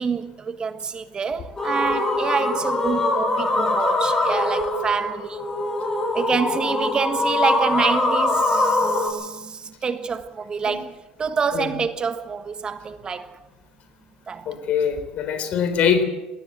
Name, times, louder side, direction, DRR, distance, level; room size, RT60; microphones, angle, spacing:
voice 1, 0.0-5.4 6.1-10.9 11.2-13.4 14.3-14.5, right 6 dB, 35° right, 1.5 m, -27 dB
sound 1, 1.6-9.1, left 2 dB, 20° left, 6.9 m, -23 dB
voice 2, 14.5-16.0, left 7 dB, 55° left, 4.0 m, -23 dB
20.0 x 17.5 x 8.3 m
supercardioid pair, 85°, 3 cm